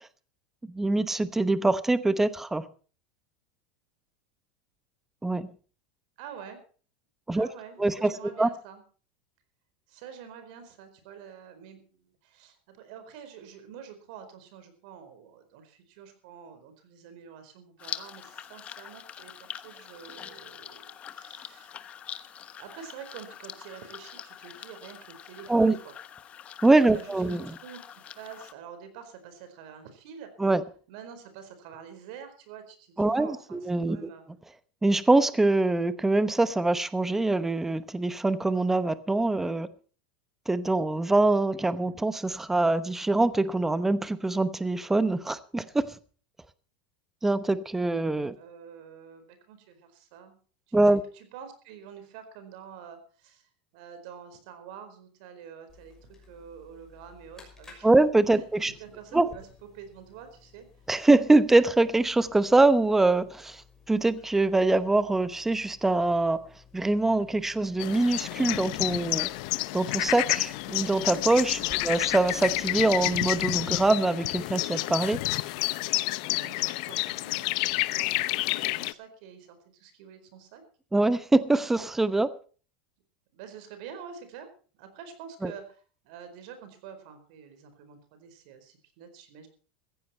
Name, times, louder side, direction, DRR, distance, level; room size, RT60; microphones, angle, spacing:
voice 1, 0.7-2.6 5.2-5.5 7.3-7.5 7.8-8.1 8.4-8.5 25.5-25.8 26.6-27.5 30.4-30.6 33.0-34.1 34.8-39.7 40.5-45.9 47.2-48.3 50.7-51.0 57.8-58.7 59.1-59.3 60.9-63.6 63.9-66.4 66.7-69.3 69.7-75.2 80.9-82.3 85.4-85.5, right 2 dB, 5° right, 0.9 m, -24 dB
voice 2, 6.2-6.6 7.3-8.8 9.9-21.7 22.6-25.9 26.9-30.3 30.9-34.2 48.4-50.3 50.7-57.9 58.3-60.7 71.6-71.9 76.3-80.6 83.3-84.5 84.8-89.5, right 7 dB, 65° right, 4.4 m, -47 dB
sound 1, 17.8-28.5, left 9 dB, 30° left, 1.1 m, -44 dB
sound 2, 55.7-73.9, left 5 dB, 10° left, 6.1 m, -55 dB
sound 3, 67.8-78.9, left 21 dB, 60° left, 0.7 m, -29 dB
15.5 x 15.0 x 4.4 m
supercardioid pair, 140°, 5 cm